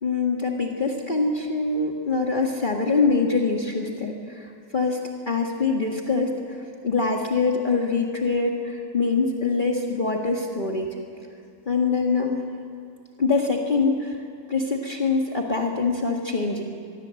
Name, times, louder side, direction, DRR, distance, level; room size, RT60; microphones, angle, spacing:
voice 1, 0.0-5.0 5.3-6.6 6.8-10.9 11.7-12.4 13.2-14.2 14.5-16.6, left 4 dB, 30° left, 0 dB, 1.9 m, -24 dB
25.0 x 21.0 x 7.8 m, 2.5 s
omnidirectional pair, 1.6 m